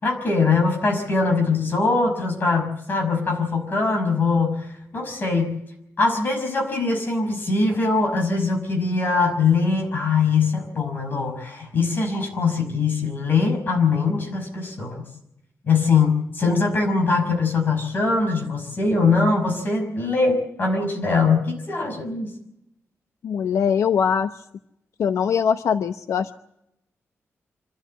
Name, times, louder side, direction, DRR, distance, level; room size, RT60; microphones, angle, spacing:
voice 1, 0.0-4.7 4.9-5.5 6.0-15.0 15.6-22.3, left 4 dB, 40° left, 4 dB, 5.6 m, -22 dB
voice 2, 23.2-24.3 25.0-26.3, left 7 dB, 90° left, 10 dB, 0.8 m, -22 dB
26.0 x 13.0 x 8.9 m, 0.81 s
wide cardioid pair, 165°, 5 cm